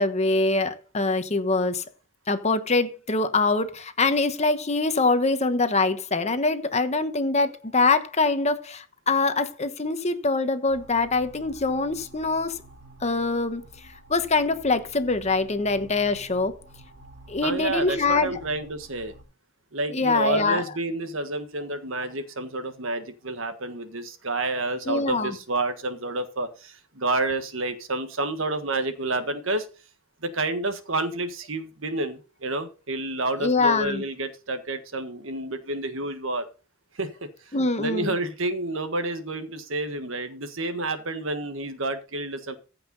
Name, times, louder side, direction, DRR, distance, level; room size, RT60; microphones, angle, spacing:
voice 1, 0.0-1.8 2.3-12.6 13.0-13.6 14.1-16.5 17.3-18.4 19.9-20.6 24.9-25.3 33.4-34.0 37.5-38.1, left 3 dB, 35° left, 1.1 m, -24 dB
sound 1, 10.7-19.2, right 2 dB, 55° right, 2.7 m, -49 dB
voice 2, 17.4-19.2 19.7-29.7 30.2-36.5 36.9-42.6, right 2 dB, 75° right, 1.6 m, -29 dB
15.0 x 5.7 x 4.0 m
head